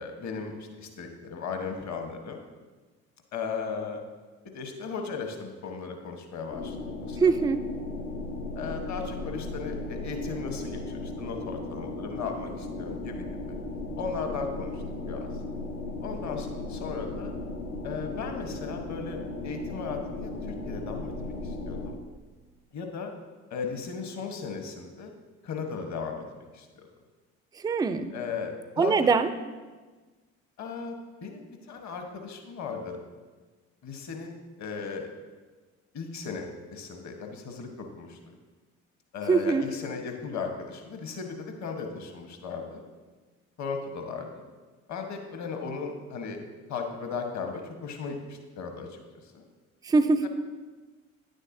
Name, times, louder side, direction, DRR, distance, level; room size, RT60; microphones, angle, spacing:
voice 1, 0.0-2.4 3.3-4.0 4.5-6.8 7.1-7.3 8.5-13.5 14.0-15.3 16.0-17.3 17.8-22.0 22.7-23.1 23.5-25.1 25.4-26.9 28.1-29.0 30.6-30.9 31.2-33.0 33.8-35.1 35.9-38.3 39.1-42.8 43.6-44.4 44.9-46.4 46.7-49.0 49.3-49.4 50.2-50.3, left 5 dB, 45° left, 4 dB, 1.1 m, -36 dB
sound 1, 6.5-21.9, left 2 dB, 85° left, 1.0 m, -36 dB
voice 2, 7.2-7.6 27.6-28.1 28.8-29.3 39.3-39.7 49.9-50.3, right 4 dB, 10° right, 12 dB, 0.3 m, -22 dB
9.4 x 6.5 x 2.6 m, 1.3 s
hypercardioid pair, 60°, 38 cm